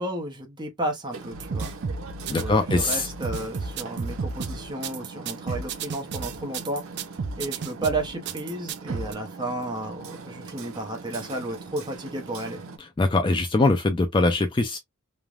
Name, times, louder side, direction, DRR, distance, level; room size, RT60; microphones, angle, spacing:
voice 1, 0.0-1.7 2.3-6.9 7.4-12.6, right 1 dB, 20° right, 0.7 m, -32 dB
Hammer, 1.1-12.8, right 4 dB, 90° right, 0.7 m, -41 dB
sound 1, 1.3-9.1, right 4 dB, 55° right, 0.4 m, -32 dB
voice 2, 2.3-3.1 13.0-14.8, left 2 dB, 25° left, 0.3 m, -22 dB
3.2 x 2.1 x 2.4 m
head